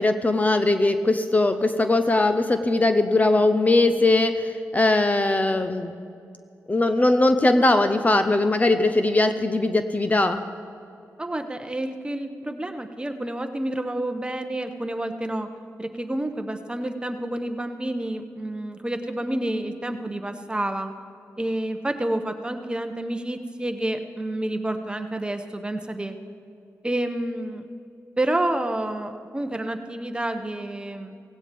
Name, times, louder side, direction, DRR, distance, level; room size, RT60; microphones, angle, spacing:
voice 1, 0.0-5.9 6.7-10.4, left 2 dB, 25° left, 8 dB, 0.7 m, -20 dB
voice 2, 11.2-15.5 15.8-20.9 21.4-26.2 26.8-27.6 28.2-31.1, right 1 dB, 15° right, 7 dB, 1.0 m, -29 dB
17.5 x 16.0 x 3.5 m, 2.5 s
cardioid pair, 75°, 6 cm